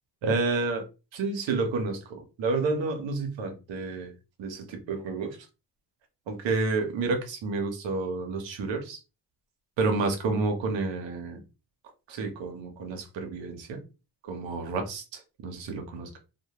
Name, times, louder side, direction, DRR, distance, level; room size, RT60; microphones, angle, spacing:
voice 1, 0.2-0.9 1.1-4.1 4.4-5.4 6.3-9.0 9.8-11.4 12.1-13.8 14.2-16.2, right 3 dB, 85° right, 5 dB, 0.7 m, -30 dB
2.1 x 2.1 x 2.8 m, 0.29 s
supercardioid pair, 45°, 44 cm